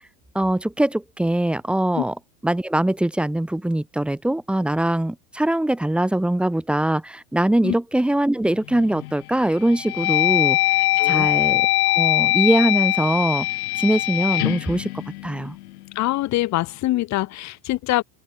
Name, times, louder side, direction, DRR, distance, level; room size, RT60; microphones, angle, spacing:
voice 1, 0.3-2.2 2.4-13.5 13.8-14.9 15.2-15.5, right 1 dB, ahead, 0.8 m, -22 dB
sound 1, 8.7-9.1 9.6-15.8, left 19 dB, 75° left, 0.7 m, -22 dB
voice 2, 11.0-11.3 16.0-18.0, left 17 dB, 40° left, 2.0 m, -24 dB
open air
supercardioid pair, 120°, 44 cm